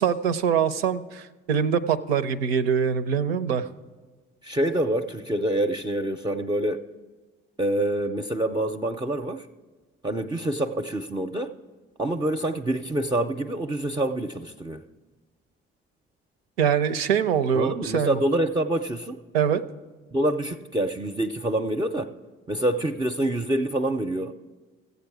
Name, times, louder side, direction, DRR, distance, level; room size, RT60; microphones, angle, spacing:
voice 1, 0.0-3.7 16.6-18.2 19.3-19.6, right 7 dB, 90° right, 0.5 m, -23 dB
voice 2, 4.4-6.8 7.6-9.5 10.0-11.5 12.0-14.8 17.5-19.2 20.1-22.1 22.5-24.3, right 1 dB, 15° right, 0.5 m, -26 dB
15.0 x 8.1 x 4.7 m
hypercardioid pair, 55°, 29 cm